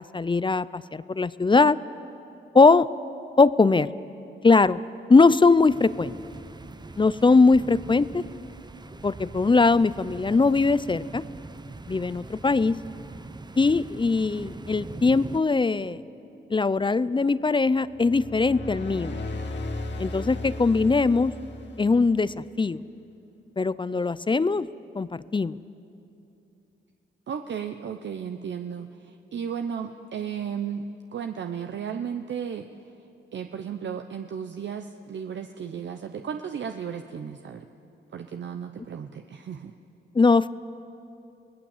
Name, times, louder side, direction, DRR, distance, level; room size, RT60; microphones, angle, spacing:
voice 1, 0.0-1.8 2.5-2.9 3.4-3.9 4.4-4.8 5.1-6.1 7.0-8.2 9.0-11.2 11.9-12.8 13.6-16.0 16.5-19.2 20.0-21.3 21.8-22.8 23.6-24.7 24.9-25.6 40.1-40.5, left 3 dB, 25° left, 17 dB, 0.5 m, -21 dB
sound 1, 5.7-15.4, right 3 dB, 20° right, 0.8 m, -42 dB
sound 2, 17.9-22.5, left 2 dB, 60° left, 2.1 m, -36 dB
voice 2, 27.3-30.8 31.1-32.7 33.3-37.7 38.1-39.7, right 7 dB, 60° right, 6 dB, 0.9 m, -34 dB
24.5 x 18.0 x 7.4 m, 2.8 s
cardioid pair, 70°, 21 cm